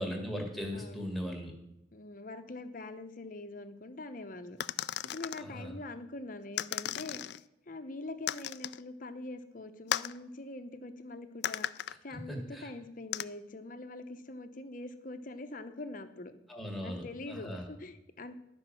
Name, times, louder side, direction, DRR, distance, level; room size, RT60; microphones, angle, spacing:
voice 1, 0.0-1.5 5.4-5.8 11.9-12.7 16.5-17.7, equal, ahead, 0 dB, 1.8 m, -39 dB
voice 2, 0.7-1.1 1.9-4.6 5.1-7.2 7.7-11.7 12.0-16.3 16.8-18.4, left 2 dB, 50° left, 9 dB, 0.8 m, -44 dB
sound 1, 4.6-5.4 6.6-7.4 8.3-8.8 9.9-10.2 11.4-11.9 13.1-13.2, left 11 dB, 65° left, 0.3 m, -35 dB
12.0 x 5.3 x 7.6 m, 0.88 s
head